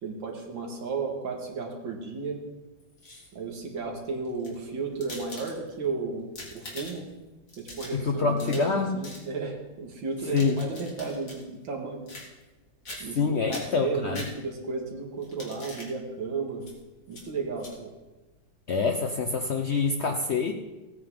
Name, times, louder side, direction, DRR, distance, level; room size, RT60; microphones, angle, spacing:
voice 1, 0.0-2.4 3.3-7.1 7.6-12.0 13.0-16.7 17.1-17.9, right 4 dB, 75° right, 1 dB, 2.5 m, -34 dB
sound 1, 2.8-3.5 4.2-5.9 6.2-7.1 7.5-8.8 9.0-9.3 10.1-11.4 12.1-12.6 12.9-13.2 13.5-14.7 15.2-15.9 16.6-16.7 17.1-17.2 17.6-17.7, left 2 dB, 45° left, 2.6 m, -43 dB
voice 2, 7.9-9.0 10.3-10.7 13.2-14.2 18.7-20.5, left 5 dB, 70° left, 3 dB, 0.6 m, -26 dB
16.5 x 9.3 x 3.7 m, 1.1 s
omnidirectional pair, 2.1 m